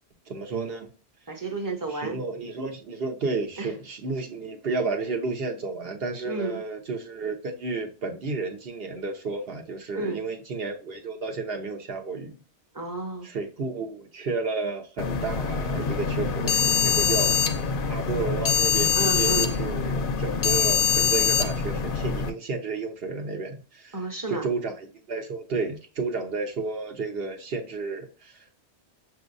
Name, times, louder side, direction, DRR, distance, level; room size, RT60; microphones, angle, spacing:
voice 1, 0.3-0.9 1.9-12.4 13.2-17.4 17.9-24.0 24.3-28.5, right 4 dB, 65° right, 1.1 m, -32 dB
voice 2, 1.3-2.2 3.6-3.7 6.2-6.6 9.9-10.2 12.7-13.3 18.9-19.5 23.9-24.5, right 3 dB, 20° right, 0.8 m, -31 dB
sound 1, 15.0-22.3, left 6 dB, 60° left, 0.7 m, -24 dB
6.1 x 2.7 x 2.5 m
omnidirectional pair, 1.1 m